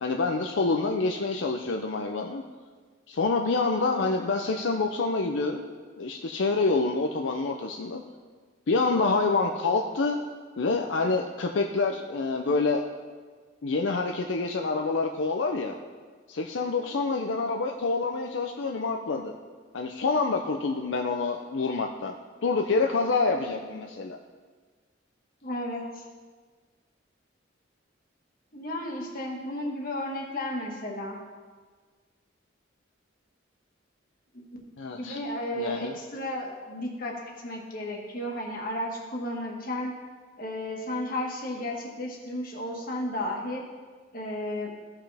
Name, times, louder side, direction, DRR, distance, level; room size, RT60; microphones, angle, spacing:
voice 1, 0.0-2.4 3.1-5.7 6.0-8.0 8.7-10.2 10.6-12.8 13.6-15.8 16.3-19.3 19.7-22.1 22.4-24.2 34.8-35.2 35.6-35.9, left 3 dB, 80° left, 3 dB, 0.5 m, -27 dB
voice 2, 16.6-17.0 23.4-23.8 25.4-26.0 28.5-31.2 34.3-34.4 35.0-39.9 40.4-43.6 44.1-44.7, left 1 dB, 50° left, -1 dB, 1.6 m, -33 dB
15.5 x 5.7 x 3.4 m, 1.5 s
head